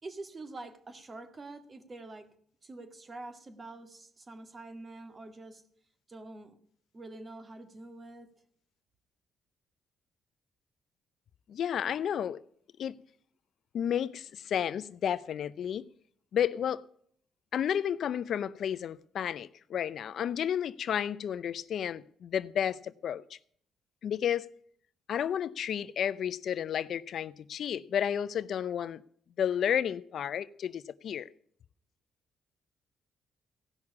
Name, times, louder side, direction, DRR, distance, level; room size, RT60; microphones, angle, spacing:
voice 1, 0.0-2.3 2.6-5.6 6.1-6.6 6.9-8.3, right 2 dB, 30° right, 1.9 m, -46 dB
voice 2, 11.5-12.4 12.8-13.0 13.7-15.9 16.3-16.8 17.5-23.2 24.0-24.5 25.1-29.0 29.4-31.3, left 9 dB, 65° left, 0.5 m, -32 dB
16.5 x 6.0 x 8.5 m
cardioid pair, 90°, 0 cm